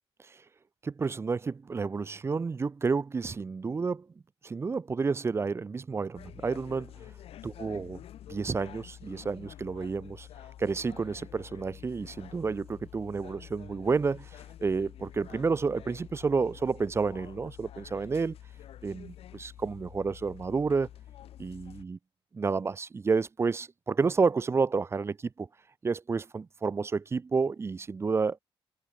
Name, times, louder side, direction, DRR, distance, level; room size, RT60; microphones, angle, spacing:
voice 1, 0.8-4.1 4.4-6.9 7.4-8.0 8.3-10.3 10.6-18.4 18.8-20.9 21.4-22.0 22.3-25.5 25.8-28.4, right 4 dB, 25° right, 0.9 m, -30 dB
sound 1, 6.1-21.8, left 11 dB, 75° left, 2.4 m, -48 dB
cardioid pair, 145°, 10 cm